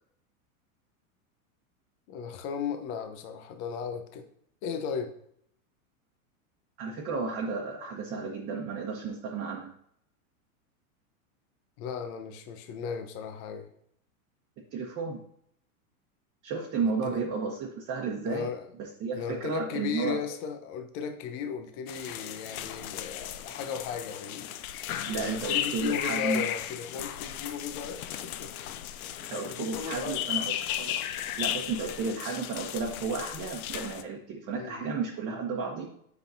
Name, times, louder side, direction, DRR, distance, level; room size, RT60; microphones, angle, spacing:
voice 1, 2.1-4.2 4.6-5.1 11.8-13.7 17.0-17.2 18.2-18.7 19.1-24.5 25.1-28.8 29.3-30.3 34.5-34.9, left 6 dB, 50° left, 6 dB, 0.9 m, -36 dB
voice 2, 6.8-9.7 14.7-15.2 16.4-18.5 18.8-20.2 25.0-26.4 29.3-30.5 30.8-31.0 31.4-35.9, right 4 dB, 30° right, -1 dB, 1.1 m, -33 dB
sound 1, 21.9-34.0, left 11 dB, 75° left, 0.7 m, -35 dB
7.9 x 5.7 x 2.6 m, 0.69 s
hypercardioid pair, 125°, 43 cm